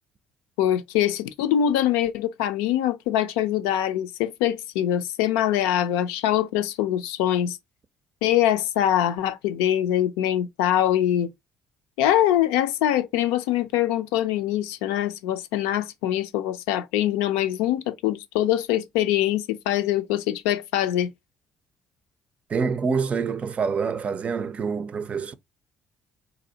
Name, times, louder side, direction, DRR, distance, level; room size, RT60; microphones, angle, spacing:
voice 1, 0.6-7.6 8.2-11.3 12.0-21.1, left 11 dB, 80° left, 0.4 m, -23 dB
voice 2, 22.5-25.3, right 5 dB, 40° right, 0.5 m, -26 dB
3.9 x 2.7 x 2.8 m
hypercardioid pair, 50°, 3 cm